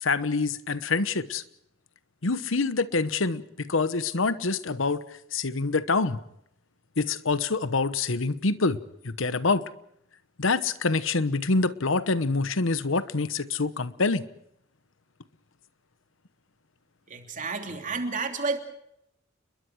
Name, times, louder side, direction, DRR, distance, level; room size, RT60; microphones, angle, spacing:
voice 1, 0.0-1.4 2.2-5.0 5.3-6.2 7.0-8.8 9.0-9.6 10.4-14.2, left 3 dB, 75° left, 1.1 m, -26 dB
voice 2, 17.1-18.6, right 4 dB, 40° right, 3.1 m, -30 dB
30.0 x 21.5 x 4.7 m
head